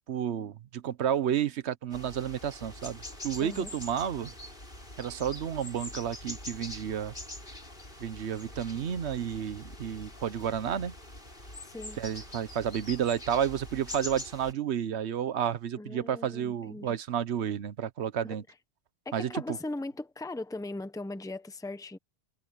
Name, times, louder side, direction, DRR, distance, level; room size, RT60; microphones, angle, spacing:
voice 1, 0.0-4.3 5.0-7.1 8.0-10.9 12.0-18.4 19.1-19.6, right 9 dB, 90° right, 1.1 m, -31 dB
Parus major, 1.9-14.5, left 1 dB, 55° left, 7.3 m, -44 dB
voice 2, 3.4-3.7 11.6-12.0 15.8-17.0 18.2-18.4 19.0-22.0, left 2 dB, 5° left, 0.9 m, -39 dB
omnidirectional pair, 1.1 m